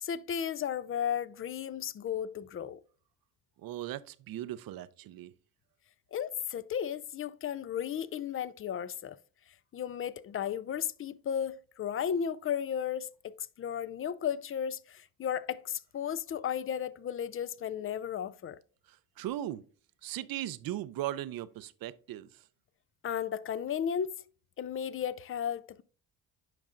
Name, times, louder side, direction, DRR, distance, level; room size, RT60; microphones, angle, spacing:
voice 1, 0.0-2.8 6.1-9.2 9.7-18.6 23.0-24.2 24.6-25.8, left 8 dB, 35° left, 0.4 m, -34 dB
voice 2, 3.6-5.3 18.9-19.6 20.0-22.4, right 13 dB, 60° right, 0.6 m, -38 dB
9.1 x 5.2 x 2.5 m
supercardioid pair, 60°, 40 cm